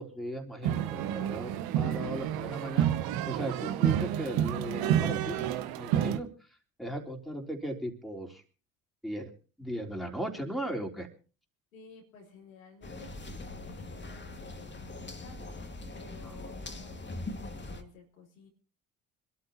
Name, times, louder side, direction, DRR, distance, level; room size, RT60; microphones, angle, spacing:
voice 1, 0.0-5.5 5.8-6.3 6.8-8.4 9.0-9.3 9.6-11.1 16.2-16.4, right 1 dB, ahead, 0 dB, 3.7 m, -37 dB
sound 1, 0.6-6.2, right 11 dB, 65° right, 1.2 m, -29 dB
voice 2, 11.7-18.5, left 4 dB, 85° left, -1 dB, 3.7 m, -54 dB
sound 2, 12.8-17.8, left 2 dB, 25° left, 2.4 m, -42 dB
26.0 x 13.0 x 2.8 m, 0.37 s
hypercardioid pair, 55°, 39 cm